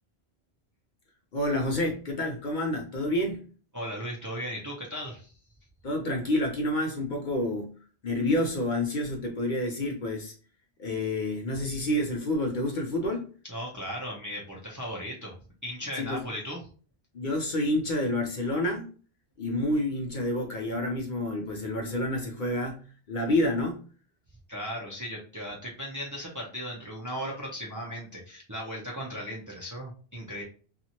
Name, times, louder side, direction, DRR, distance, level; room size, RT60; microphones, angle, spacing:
voice 1, 1.3-3.5 5.8-10.3 10.8-13.3 15.9-16.2 17.1-18.9 19.4-23.8, left 1 dB, 55° left, 2 dB, 0.6 m, -29 dB
voice 2, 3.7-5.3 13.5-15.3 15.6-16.6 24.5-30.4, equal, 25° right, -3 dB, 0.5 m, -37 dB
2.7 x 2.4 x 2.8 m, 0.39 s
omnidirectional pair, 1.1 m